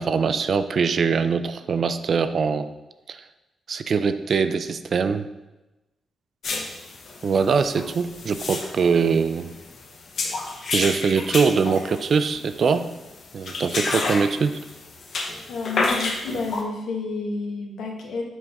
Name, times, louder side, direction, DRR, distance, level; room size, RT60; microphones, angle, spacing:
voice 1, 0.0-2.7 3.1-3.2 3.7-5.3 7.2-9.5 10.7-12.9 13.3-14.6, right 5 dB, 45° right, 11 dB, 0.3 m, -22 dB
sound 1, 6.4-16.6, left 3 dB, 55° left, 0.9 m, -31 dB
voice 2, 15.5-18.2, left 4 dB, 90° left, 0 dB, 1.2 m, -30 dB
6.0 x 5.3 x 3.5 m, 1.0 s
wide cardioid pair, 155°, 0 cm